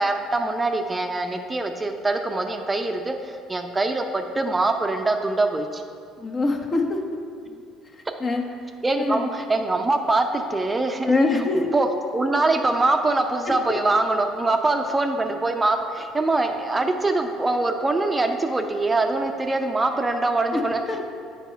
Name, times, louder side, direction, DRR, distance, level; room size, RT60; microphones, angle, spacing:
voice 1, 0.0-5.8 7.5-7.6 8.8-11.1 11.7-20.8, right 2 dB, 20° right, 5 dB, 0.5 m, -23 dB
voice 2, 6.2-7.0 8.2-8.4 9.0-9.3 11.1-11.7 20.5-20.6 20.9-21.0, left 3 dB, 35° left, 3 dB, 0.9 m, -23 dB
8.0 x 4.2 x 5.5 m, 2.3 s
hypercardioid pair, 60°, 0 cm